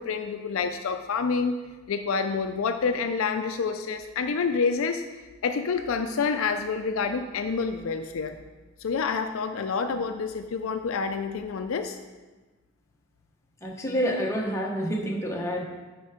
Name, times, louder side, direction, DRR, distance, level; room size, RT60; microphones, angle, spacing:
voice 1, 0.0-1.6 1.9-5.0 5.4-8.4 8.8-12.0, left 5 dB, 65° left, 7 dB, 0.4 m, -28 dB
voice 2, 13.6-15.6, equal, 15° left, -1 dB, 1.0 m, -28 dB
8.1 x 4.5 x 4.9 m, 1.2 s
head